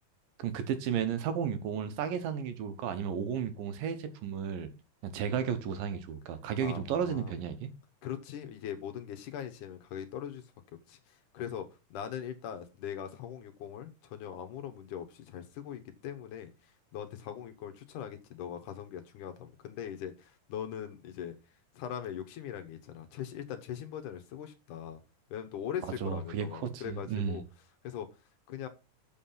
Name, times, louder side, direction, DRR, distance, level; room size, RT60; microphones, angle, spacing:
voice 1, 0.4-4.7 5.0-7.7 26.0-27.4, right 7 dB, 85° right, 2.8 m, -33 dB
voice 2, 6.6-7.4 8.0-10.5 10.9-21.4 21.7-25.0 25.3-27.4 27.8-28.1 28.5-28.7, left 9 dB, 70° left, 2.5 m, -41 dB
7.2 x 6.2 x 5.7 m
omnidirectional pair, 3.8 m